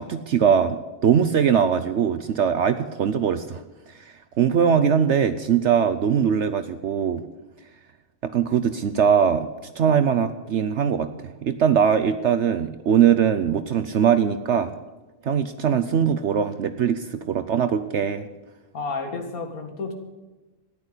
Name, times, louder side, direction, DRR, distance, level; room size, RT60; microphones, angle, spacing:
voice 1, 0.0-3.6 3.9-7.2 8.2-14.7 15.2-18.3, right 8 dB, 60° right, 10 dB, 0.9 m, -21 dB
voice 2, 18.7-19.9, left 4 dB, 85° left, 5 dB, 2.4 m, -31 dB
14.0 x 10.5 x 8.2 m, 1.2 s
omnidirectional pair, 1.5 m